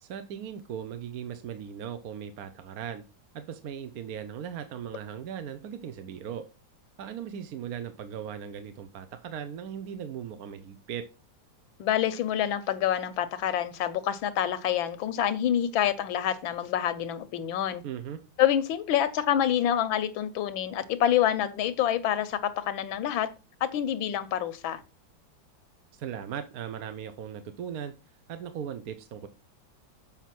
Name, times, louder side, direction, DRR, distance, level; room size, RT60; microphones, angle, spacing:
voice 1, 0.0-3.0 3.3-6.5 7.0-11.0 17.8-18.2 25.9-27.9 28.3-29.3, right 8 dB, 60° right, 1.0 m, -38 dB
voice 2, 11.8-17.8 18.4-23.3 23.6-24.8, left 10 dB, 85° left, 1.6 m, -27 dB
7.3 x 5.3 x 5.9 m
omnidirectional pair, 2.1 m